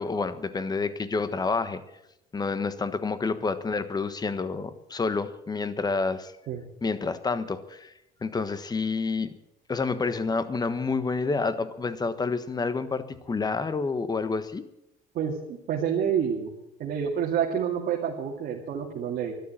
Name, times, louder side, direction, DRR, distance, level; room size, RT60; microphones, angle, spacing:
voice 1, 0.0-1.8 2.3-6.3 6.8-7.9 8.2-9.4 9.7-14.6, left 4 dB, 25° left, 12 dB, 1.3 m, -29 dB
voice 2, 15.1-16.5 16.8-19.3, right 8 dB, 65° right, -1 dB, 2.5 m, -28 dB
13.0 x 12.0 x 8.9 m, 0.86 s
cardioid pair, 110°, 17 cm